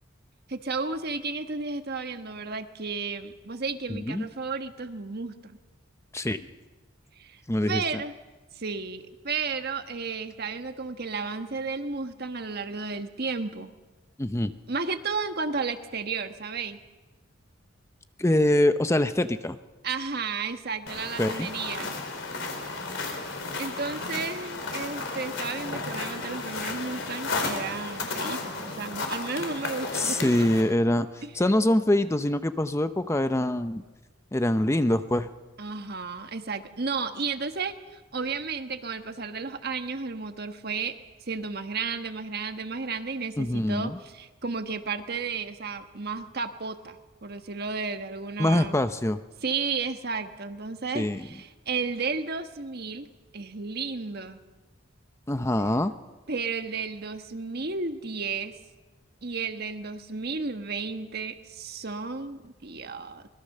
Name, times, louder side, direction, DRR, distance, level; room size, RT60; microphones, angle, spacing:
voice 1, 0.5-5.6 7.2-8.1 8.5-13.7 14.7-16.8 19.8-21.9 23.6-30.2 31.2-31.3 35.6-40.9 41.3-48.8 49.4-53.1 53.3-54.4 56.3-58.5 59.2-63.3, right 4 dB, 55° right, 8 dB, 1.4 m, -33 dB
voice 2, 3.9-4.3 6.1-6.4 7.5-8.0 14.2-14.5 18.2-19.6 21.2-21.5 29.9-33.8 34.3-35.3 43.4-44.0 48.4-49.2 50.9-51.2 55.3-55.9, left 1 dB, 15° left, 10 dB, 0.6 m, -24 dB
sound 1, 20.9-30.6, left 3 dB, 65° left, 4.2 m, -33 dB
25.0 x 21.0 x 6.6 m, 1.2 s
head